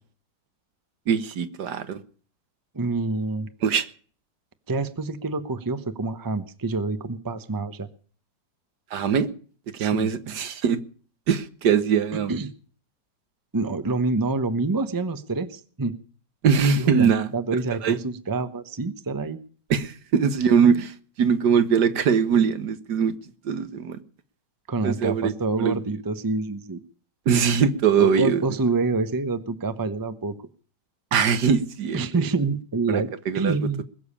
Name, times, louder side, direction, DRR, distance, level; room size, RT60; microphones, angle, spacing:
voice 1, 1.1-2.0 3.6-3.9 8.9-9.3 9.8-10.8 11.3-12.4 16.4-17.3 17.8-18.0 19.7-23.1 23.5-24.0 24.8-25.3 25.6-25.8 27.3-28.4 31.1-32.1 32.9-33.5, right 7 dB, 75° right, 1.7 m, -21 dB
voice 2, 2.7-3.5 4.7-7.9 9.8-10.1 12.1-12.5 13.5-15.9 16.7-19.4 24.7-26.8 28.0-30.3 31.9-33.1 33.3-33.8, right 3 dB, 15° right, 0.7 m, -27 dB
21.0 x 7.2 x 8.5 m
omnidirectional pair, 1.8 m